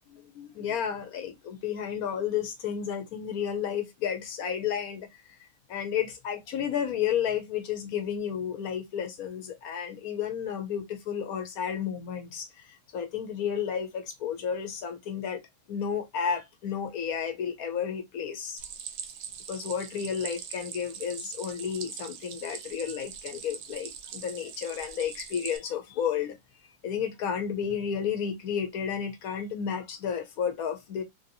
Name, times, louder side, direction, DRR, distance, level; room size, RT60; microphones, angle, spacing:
voice 1, 0.1-5.1 5.7-12.5 12.9-15.4 15.7-18.6 19.5-26.4 26.8-31.0, left 8 dB, 80° left, 1.3 m, -32 dB
Stream, 18.6-25.6, right 8 dB, 80° right, 1.1 m, -42 dB
3.4 x 2.7 x 2.5 m
omnidirectional pair, 1.5 m